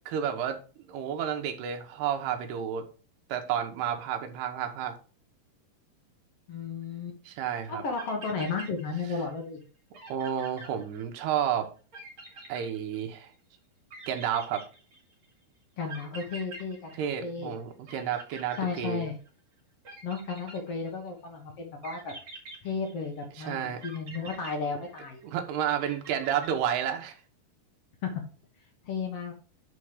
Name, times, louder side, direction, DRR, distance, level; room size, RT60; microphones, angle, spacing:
voice 1, 0.1-0.6 0.9-2.9 3.3-5.0 7.3-7.8 10.1-11.7 12.5-13.3 14.1-14.6 17.0-19.1 23.4-23.8 25.2-27.2, right 9 dB, 80° right, 3.1 m, -31 dB
voice 2, 6.5-7.2 7.7-9.6 15.8-17.5 18.6-19.2 20.0-22.1 22.6-25.2 28.0-28.1 28.8-29.3, left 5 dB, 65° left, 1.5 m, -34 dB
sound 1, 8.0-9.3 9.6-9.7 9.9-11.4 11.9-13.3 13.9-15.2 15.9-17.6 17.9-19.3 19.8-21.1 21.8-23.3 23.8-25.3 25.8-27.0, right 3 dB, 35° right, 2.6 m, -46 dB
9.3 x 4.4 x 4.9 m
omnidirectional pair, 4.7 m